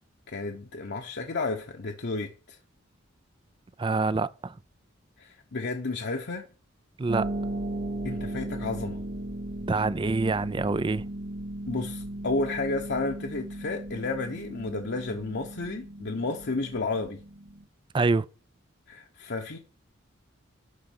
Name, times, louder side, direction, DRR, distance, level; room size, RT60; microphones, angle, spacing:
voice 1, 0.3-2.6 5.2-6.5 8.0-9.0 11.7-17.2 18.9-19.6, left 3 dB, 60° left, 0.9 m, -32 dB
voice 2, 3.8-4.6 7.0-7.3 9.7-11.0 17.9-18.3, right 3 dB, 25° right, 0.4 m, -26 dB
Harp, 7.1-17.6, right 1 dB, 50° right, 2.7 m, -36 dB
11.5 x 3.9 x 7.1 m
head